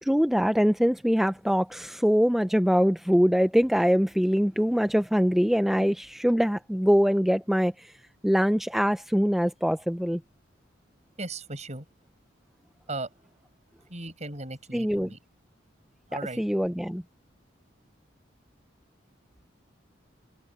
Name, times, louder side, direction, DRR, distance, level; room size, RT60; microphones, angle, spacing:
voice 1, 0.0-8.0 8.2-10.2 14.7-15.1 16.4-17.0, equal, ahead, 0.5 m, -23 dB
voice 2, 11.2-11.8 12.9-13.1 13.9-15.2 16.1-16.4, right 2 dB, 35° right, 7.5 m, -36 dB
head